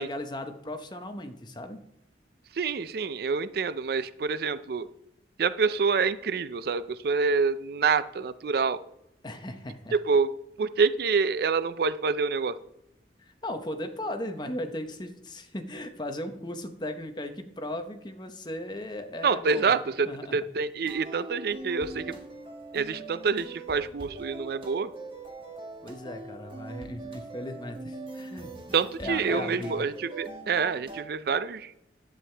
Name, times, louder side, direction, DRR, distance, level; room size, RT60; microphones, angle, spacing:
voice 1, 0.0-1.8 9.2-10.0 13.2-19.7 20.1-20.4 22.1-22.2 25.8-28.5 29.0-29.9, left 1 dB, 25° left, 7 dB, 0.9 m, -37 dB
voice 2, 2.5-4.9 5.4-8.8 9.9-10.3 10.6-12.6 19.2-22.1 22.7-24.9 28.7-31.7, right 5 dB, 55° right, 14 dB, 0.4 m, -27 dB
sound 1, 20.8-31.0, right 2 dB, 30° right, 1.5 m, -42 dB
11.0 x 9.0 x 3.3 m, 0.80 s
head